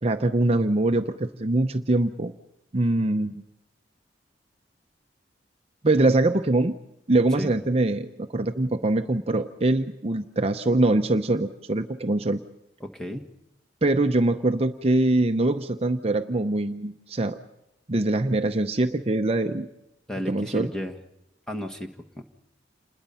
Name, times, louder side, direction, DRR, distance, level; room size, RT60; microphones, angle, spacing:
voice 1, 0.0-2.3 2.7-3.4 5.8-6.7 7.1-12.4 13.8-17.4 17.9-19.7 20.3-20.7, right 2 dB, 35° right, 7 dB, 0.7 m, -23 dB
voice 2, 12.8-13.3 20.1-20.9 21.5-21.9 22.2-22.3, equal, 5° left, 2 dB, 1.4 m, -33 dB
28.0 x 21.0 x 5.6 m, 0.89 s
head